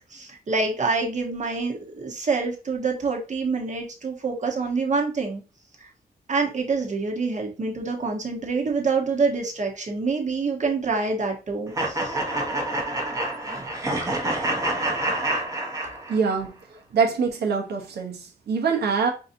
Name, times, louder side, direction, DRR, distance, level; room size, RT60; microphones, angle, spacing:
voice 1, 0.1-5.4 6.3-12.2, right 4 dB, 45° right, 1.0 m, -26 dB
sound 1, 11.7-16.4, right 1 dB, 20° right, 0.9 m, -27 dB
voice 2, 16.1-16.5 16.9-19.1, right 5 dB, 80° right, 0.8 m, -24 dB
4.6 x 2.6 x 2.6 m
wide cardioid pair, 100°, 17 cm